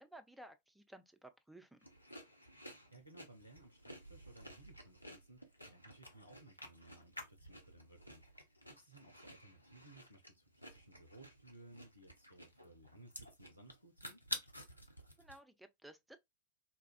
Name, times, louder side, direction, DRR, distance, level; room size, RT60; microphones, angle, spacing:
voice 1, 0.0-1.8 15.2-16.2, right 1 dB, 5° right, 0.5 m, -56 dB
sound 1, 1.8-15.4, equal, 85° left, 0.6 m, -51 dB
voice 2, 2.9-14.2, right 2 dB, 90° right, 0.5 m, -60 dB
4.0 x 2.3 x 2.2 m
figure-of-eight pair, 90°, 0 cm